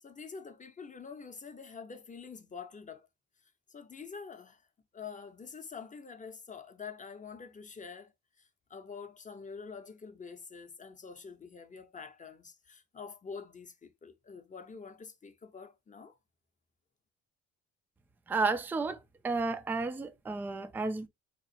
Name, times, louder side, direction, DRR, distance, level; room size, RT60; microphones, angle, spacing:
voice 1, 0.0-3.1 3.7-4.6 4.9-8.1 8.4-16.2, left 5 dB, 25° left, 0.7 m, -46 dB
voice 2, 18.3-19.0 19.2-21.1, right 3 dB, 5° right, 0.3 m, -32 dB
3.9 x 3.0 x 2.6 m
cardioid pair, 90°, 30 cm